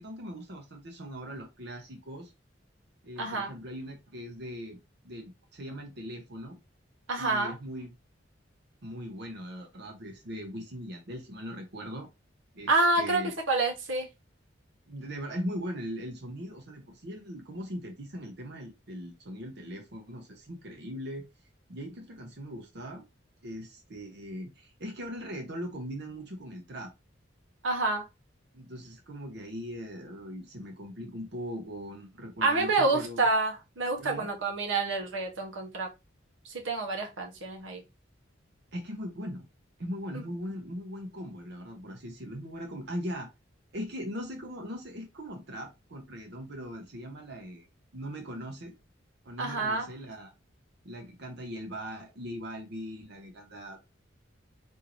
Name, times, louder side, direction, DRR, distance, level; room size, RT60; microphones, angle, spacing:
voice 1, 0.0-2.3 3.0-4.8 5.0-6.6 7.2-7.9 8.8-12.1 12.5-13.3 14.9-21.3 21.7-23.0 23.4-26.9 28.5-33.3 34.0-34.3 38.7-39.5 39.8-43.3 43.7-47.7 47.9-48.7 49.2-50.3 50.8-53.8, equal, 60° right, 3 dB, 0.8 m, -40 dB
voice 2, 3.2-3.5 7.1-7.5 12.7-13.2 13.5-14.1 27.6-28.0 32.4-35.9 36.5-37.8 49.4-49.9, right 3 dB, 85° right, 1 dB, 0.9 m, -28 dB
3.8 x 2.7 x 2.9 m, 0.24 s
head